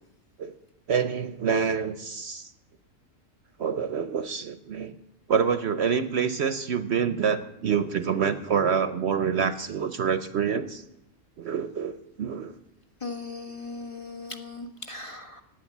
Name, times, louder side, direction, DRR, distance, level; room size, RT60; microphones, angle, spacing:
voice 1, 0.9-2.5 3.6-4.9 5.3-10.8 11.4-12.5, right 6 dB, 60° right, 11 dB, 0.9 m, -27 dB
voice 2, 13.0-15.4, left 3 dB, 25° left, 3 dB, 1.3 m, -38 dB
16.5 x 10.0 x 7.2 m, 0.92 s
omnidirectional pair, 1.4 m